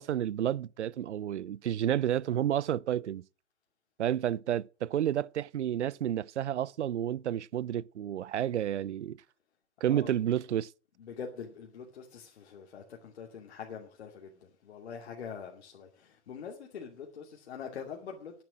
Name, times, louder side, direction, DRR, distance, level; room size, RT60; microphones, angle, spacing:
voice 1, 0.0-3.2 4.0-9.2 9.8-10.7, right 11 dB, 75° right, 0.6 m, -30 dB
voice 2, 11.0-18.4, left 6 dB, 65° left, 2.5 m, -44 dB
10.5 x 10.0 x 6.1 m
hypercardioid pair, 115°, 35 cm